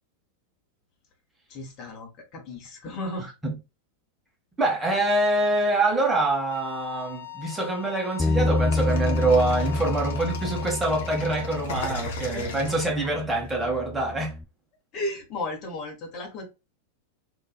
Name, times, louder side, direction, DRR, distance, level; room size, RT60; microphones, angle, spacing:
voice 1, 1.5-3.3 12.3-13.1 14.9-16.4, left 2 dB, 40° left, 1.3 m, -35 dB
voice 2, 4.6-14.3, right 2 dB, 10° right, 1.3 m, -25 dB
Bowed string instrument, 6.5-11.6, left 14 dB, 85° left, 0.7 m, -40 dB
Bass guitar, 8.2-14.4, left 2 dB, 5° left, 0.4 m, -29 dB
sound 1, 8.7-13.5, left 2 dB, 60° left, 1.0 m, -36 dB
2.9 x 2.9 x 2.3 m
figure-of-eight pair, 90°, 0 cm